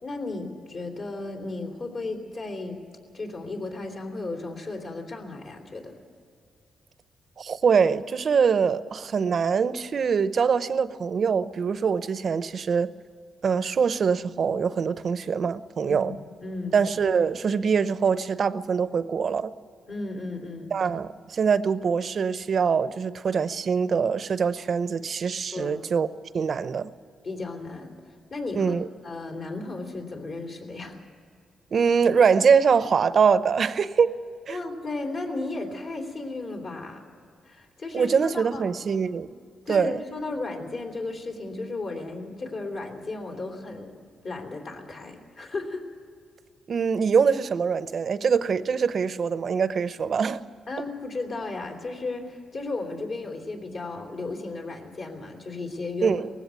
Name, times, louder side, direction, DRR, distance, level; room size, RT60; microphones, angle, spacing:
voice 1, 0.0-2.8 3.1-5.9 15.9-16.7 19.9-20.7 25.5-25.8 27.2-27.9 28.3-28.7 29.0-31.0 34.5-37.0 37.4-38.6 39.6-43.9 44.2-45.8 50.7-56.1, left 3 dB, 55° left, 2 dB, 3.3 m, -34 dB
voice 2, 7.4-12.9 13.4-16.1 16.7-19.5 20.7-26.1 26.3-26.9 28.6-28.9 31.7-34.2 34.5-34.6 37.9-39.4 39.7-40.0 46.7-50.4 56.0-56.3, right 6 dB, 50° right, 14 dB, 0.7 m, -23 dB
19.0 x 16.0 x 9.5 m, 2.3 s
cardioid pair, 105°, 0 cm